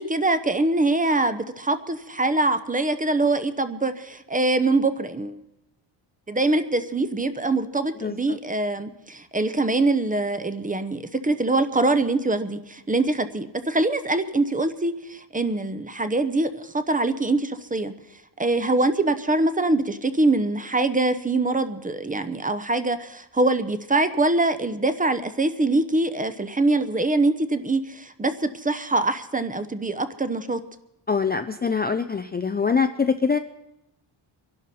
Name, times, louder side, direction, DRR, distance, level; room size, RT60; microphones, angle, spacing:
voice 1, 0.0-5.4 6.3-17.9 18.4-30.6, right 2 dB, 15° right, 11 dB, 0.7 m, -23 dB
voice 2, 8.0-8.4 31.1-33.4, left 5 dB, 20° left, 8 dB, 0.4 m, -24 dB
24.5 x 11.5 x 4.2 m, 0.89 s
wide cardioid pair, 120°, 48 cm